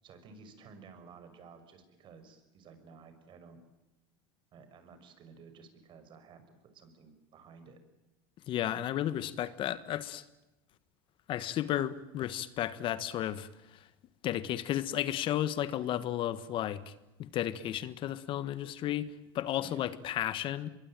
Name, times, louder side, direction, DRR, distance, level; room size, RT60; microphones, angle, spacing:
voice 1, 0.0-3.6 4.5-7.8 19.6-19.9, right 5 dB, 45° right, 9 dB, 6.2 m, -54 dB
voice 2, 8.5-10.3 11.3-13.9 14.2-16.9 17.2-20.7, left 12 dB, 45° left, 14 dB, 1.4 m, -33 dB
25.0 x 22.5 x 9.0 m, 0.99 s
supercardioid pair, 115°, 12 cm